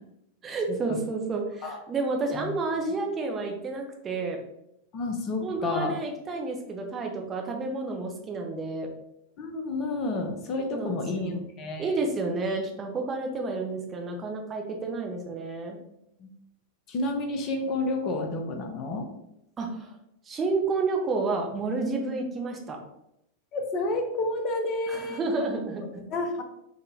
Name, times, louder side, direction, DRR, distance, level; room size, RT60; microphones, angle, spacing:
voice 1, 0.4-4.4 5.4-8.9 10.5-11.4 11.8-15.8 19.6-19.9 20.3-22.8 24.9-26.0, right 3 dB, 20° right, 2 dB, 0.6 m, -30 dB
voice 2, 4.9-5.9 9.4-11.3 11.6-11.9 16.2-16.3 16.9-19.1 23.5-25.2 25.8-26.4, left 2 dB, 35° left, 4 dB, 0.5 m, -30 dB
3.7 x 2.1 x 2.7 m, 0.82 s
figure-of-eight pair, 90°, 0 cm